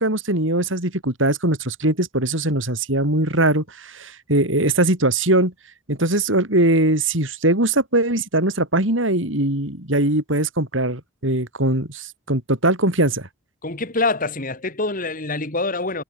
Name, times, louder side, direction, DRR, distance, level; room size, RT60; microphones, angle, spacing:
voice 1, 0.0-5.5 5.9-13.3, right 1 dB, 70° right, 5.8 m, -21 dB
voice 2, 13.6-16.0, left 3 dB, 45° left, 3.7 m, -25 dB
head